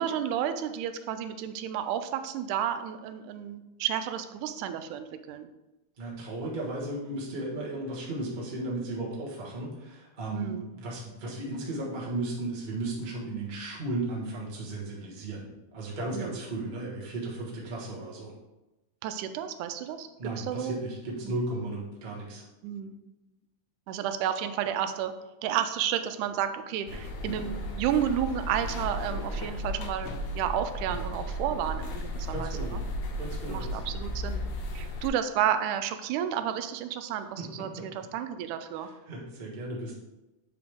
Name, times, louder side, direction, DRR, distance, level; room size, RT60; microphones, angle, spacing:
voice 1, 0.0-5.5 10.3-10.7 16.1-16.4 19.0-20.8 21.2-21.4 22.6-23.0 23.9-25.1 25.4-32.8 33.5-34.5 34.7-38.9, right 9 dB, 90° right, 9 dB, 2.0 m, -31 dB
voice 2, 6.0-18.3 20.2-22.4 32.3-32.7 33.2-33.8 37.4-37.5 37.7-37.9 39.1-40.0, right 2 dB, 30° right, -4 dB, 0.8 m, -35 dB
sound 1, 26.9-35.1, equal, 70° left, 1.7 m, -35 dB
7.2 x 4.9 x 3.5 m, 1.0 s
omnidirectional pair, 3.4 m